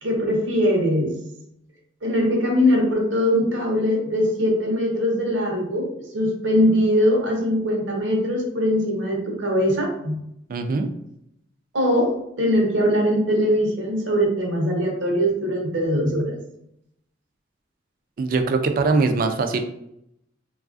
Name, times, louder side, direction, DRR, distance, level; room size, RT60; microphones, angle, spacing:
voice 1, 0.0-1.2 2.0-5.9 6.1-10.2 11.7-16.3, equal, 80° right, 0 dB, 0.8 m, -21 dB
voice 2, 10.5-10.9 18.2-19.6, right 3 dB, 50° right, 6 dB, 0.3 m, -21 dB
3.1 x 2.3 x 2.4 m, 0.77 s
head